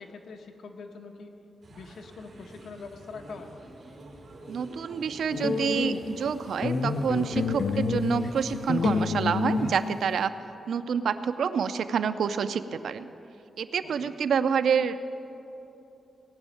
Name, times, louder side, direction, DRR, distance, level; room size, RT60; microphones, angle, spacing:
voice 1, 0.0-1.4 1.7-3.5 14.0-14.1, left 4 dB, 75° left, 4 dB, 1.3 m, -43 dB
sound 1, 1.6-9.1, right 2 dB, 50° right, 4.3 m, -48 dB
voice 2, 4.5-10.3 10.7-13.1 13.6-15.1, right 6 dB, 75° right, 11 dB, 0.5 m, -28 dB
sound 2, 5.3-6.3 6.6-10.2, left 4 dB, 50° left, 0.7 m, -28 dB
18.5 x 6.3 x 9.0 m, 2.9 s
wide cardioid pair, 145°, 0 cm